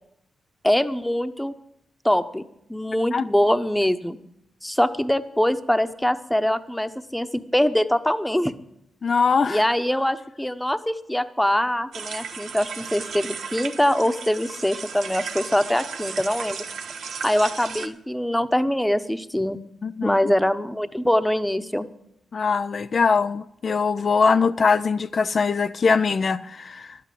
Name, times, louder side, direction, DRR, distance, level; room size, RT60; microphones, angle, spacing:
voice 1, 0.6-1.5 2.0-2.4 2.7-4.2 4.6-8.5 9.5-16.6 17.2-19.6 20.0-21.9, left 1 dB, 5° left, 0.9 m, -23 dB
voice 2, 9.0-9.6 19.8-20.2 22.3-27.0, left 5 dB, 55° left, 0.4 m, -22 dB
sound 1, 11.9-17.9, right 6 dB, 75° right, 0.9 m, -35 dB
12.0 x 8.4 x 7.7 m
supercardioid pair, 45°, 0 cm